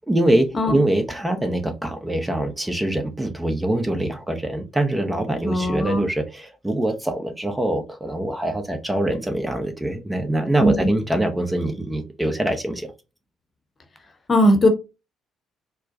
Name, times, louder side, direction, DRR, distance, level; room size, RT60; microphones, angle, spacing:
voice 1, 0.1-12.9, right 1 dB, 15° right, 0.7 m, -24 dB
voice 2, 5.4-6.0 10.6-10.9 14.3-14.7, equal, 35° left, 0.9 m, -18 dB
4.3 x 2.1 x 2.6 m
hypercardioid pair, 50°, 0 cm